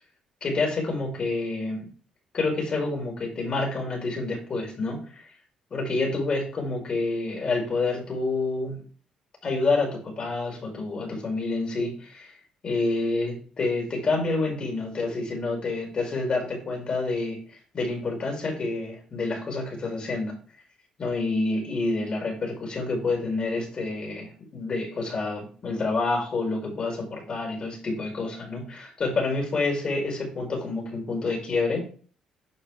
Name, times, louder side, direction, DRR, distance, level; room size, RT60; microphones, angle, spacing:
voice 1, 0.4-1.9 2.3-5.2 5.7-8.8 9.4-12.3 12.6-17.4 17.7-20.3 21.0-31.8, left 3 dB, 40° left, 0 dB, 5.7 m, -28 dB
11.5 x 7.2 x 3.4 m, 0.41 s
cardioid pair, 105°, 2 cm